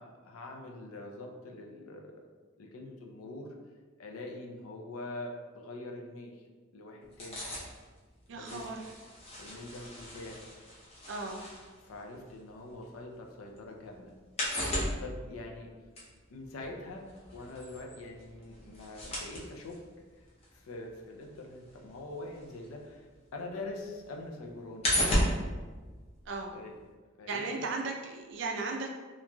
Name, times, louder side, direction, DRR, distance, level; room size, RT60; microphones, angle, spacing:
voice 1, 0.0-2.1 2.6-3.5 4.0-6.4 6.7-7.4 8.3-8.8 9.4-10.4 11.8-14.1 15.0-15.7 16.3-17.1 17.3-19.7 20.2-20.3 20.5-23.1 23.3-24.9 26.5-26.8 27.2-27.7, left 2 dB, 85° left, 1 dB, 0.4 m, -44 dB
sound 1, 7.0-13.1 13.5-23.2 23.5-26.6 26.9-27.0, equal, 30° left, 0.5 m, -35 dB
voice 2, 8.3-8.9 11.1-11.4 26.3-26.5 27.3-28.9, right 3 dB, 60° right, 1 dB, 0.4 m, -36 dB
3.0 x 2.5 x 2.2 m, 1.4 s
head